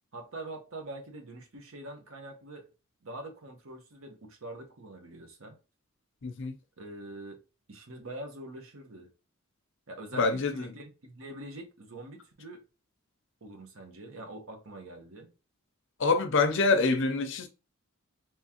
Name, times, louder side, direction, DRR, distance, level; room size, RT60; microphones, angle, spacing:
voice 1, 0.1-2.7 3.0-5.6 6.8-7.4 7.7-9.1 9.9-12.6 13.4-15.3, right 2 dB, 70° right, 1.0 m, -44 dB
voice 2, 6.2-6.6 10.2-10.7 16.0-17.5, left 4 dB, 60° left, 0.6 m, -26 dB
3.6 x 3.0 x 2.9 m
head